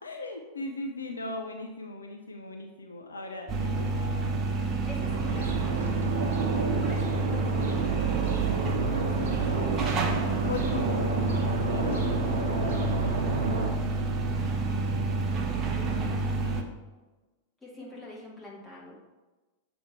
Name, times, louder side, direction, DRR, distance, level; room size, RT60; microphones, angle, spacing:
voice 1, 0.0-4.1 6.0-6.4 8.9-9.4 10.4-12.1 14.6-15.2 15.5-16.7, left 2 dB, 75° left, 4 dB, 0.5 m, -38 dB
sound 1, 3.5-16.6, right 3 dB, 30° right, 0.7 m, -29 dB
voice 2, 4.9-5.7 6.8-7.9 12.6-12.9 17.6-18.9, left 1 dB, 10° left, -5 dB, 1.7 m, -45 dB
sound 2, 5.0-13.7, right 3 dB, 60° right, 0.9 m, -31 dB
6.9 x 3.1 x 4.7 m, 1.2 s
figure-of-eight pair, 90°, 0 cm